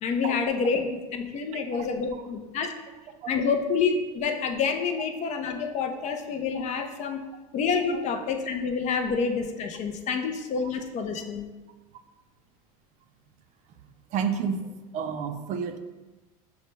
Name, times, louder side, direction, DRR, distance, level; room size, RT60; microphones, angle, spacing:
voice 1, 0.0-2.7 3.3-7.2 7.5-11.5, left 5 dB, 40° left, 5 dB, 0.5 m, -28 dB
voice 2, 14.1-15.8, right 6 dB, 40° right, 7 dB, 0.4 m, -30 dB
6.3 x 2.1 x 3.2 m, 1.2 s
hypercardioid pair, 105°, 19 cm